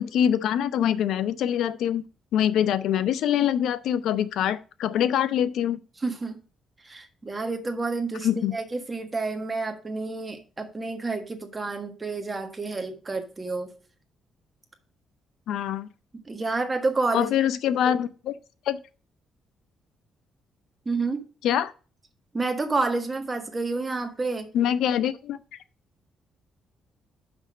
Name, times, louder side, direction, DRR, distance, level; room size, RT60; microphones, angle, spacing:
voice 1, 0.0-2.0 2.3-5.8 8.2-8.5 15.5-15.9 17.1-18.3 18.7-18.8 21.4-21.7 24.5-25.4, left 10 dB, 85° left, 0.6 m, -24 dB
voice 2, 6.0-6.4 6.8-13.7 16.2-17.3 17.9-18.0 20.8-21.2 22.3-24.5, right 3 dB, 20° right, 1.5 m, -29 dB
6.1 x 5.5 x 6.2 m
cardioid pair, 120°, 0 cm